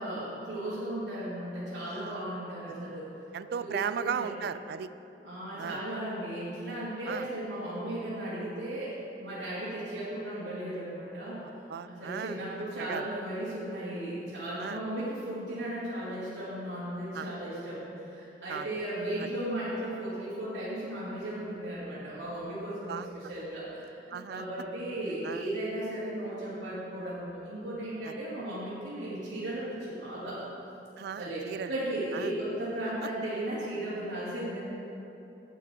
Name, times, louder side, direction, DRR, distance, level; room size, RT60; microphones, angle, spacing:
voice 1, 0.0-3.1 3.6-4.3 5.2-8.9 9.2-11.4 11.9-30.4 31.2-34.6, right 1 dB, 80° right, -12 dB, 2.3 m, -36 dB
voice 2, 1.8-2.3 3.3-4.9 5.6-5.8 7.1-7.3 11.7-12.4 12.8-13.1 14.6-14.8 17.1-17.3 18.5-18.7 19.2-19.3 22.9-23.1 24.1-24.5 25.2-25.5 28.0-28.1 31.0-31.7 32.1-32.3, right 7 dB, 60° right, 13 dB, 0.3 m, -36 dB
9.9 x 8.4 x 4.3 m, 2.9 s
head